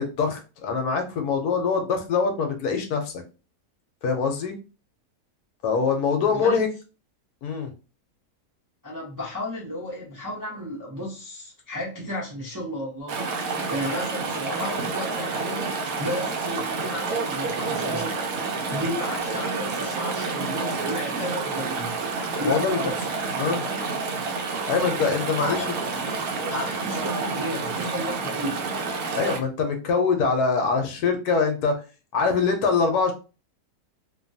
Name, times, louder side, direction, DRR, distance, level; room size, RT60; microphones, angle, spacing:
voice 1, 0.0-3.1 4.0-4.5 5.6-6.7 7.4-7.7 22.4-22.8 23.4-23.6 24.7-25.6 29.2-31.7 32.1-33.1, left 5 dB, 70° left, 5 dB, 1.1 m, -23 dB
voice 2, 8.8-18.1 18.7-21.9 22.3-23.0 25.4-25.7 26.5-28.7, left 1 dB, 25° right, -6 dB, 0.4 m, -33 dB
Chatter / Stream, 13.1-29.4, right 4 dB, 70° right, 0.9 m, -29 dB
2.8 x 2.2 x 2.6 m, 0.32 s
omnidirectional pair, 1.8 m